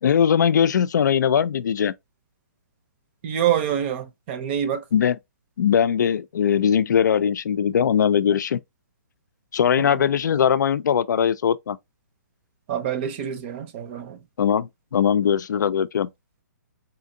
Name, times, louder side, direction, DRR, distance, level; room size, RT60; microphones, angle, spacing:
voice 1, 0.0-1.9 4.9-5.2 5.6-8.6 9.5-11.8 14.4-16.1, left 8 dB, 70° left, 0.4 m, -20 dB
voice 2, 3.2-4.8 9.8-10.0 12.7-14.2, right 10 dB, 35° right, 0.7 m, -26 dB
4.3 x 2.6 x 2.7 m
hypercardioid pair, 145°, 10 cm